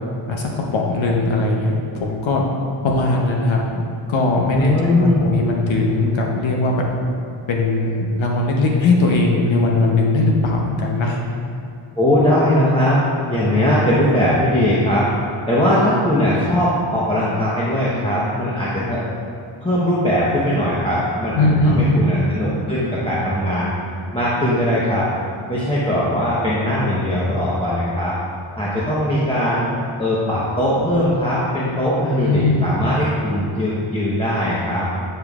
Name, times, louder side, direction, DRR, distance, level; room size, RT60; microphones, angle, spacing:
voice 1, 0.3-2.4 2.8-6.9 7.5-11.2 21.4-21.9 32.2-32.7, left 2 dB, 65° left, 0 dB, 0.9 m, -19 dB
voice 2, 4.5-5.3 11.9-15.1 15.5-19.0 19.6-23.7 24.1-25.1 25.5-28.2 28.6-29.6 30.0-34.9, left 1 dB, 10° left, -8 dB, 0.9 m, -19 dB
9.6 x 5.3 x 2.4 m, 2.5 s
wide cardioid pair, 110°, 50 cm